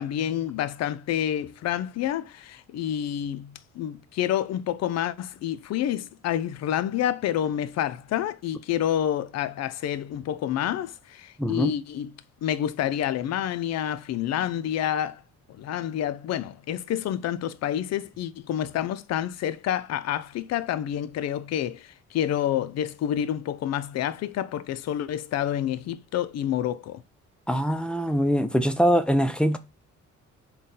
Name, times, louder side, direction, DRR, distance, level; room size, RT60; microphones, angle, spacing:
voice 1, 0.0-12.1 12.4-15.2 15.5-27.0, left 10 dB, 60° left, 0.4 m, -28 dB
voice 2, 11.4-11.8 27.5-29.6, equal, 5° left, 0.4 m, -23 dB
3.9 x 2.2 x 3.7 m
cardioid pair, 90°, 30 cm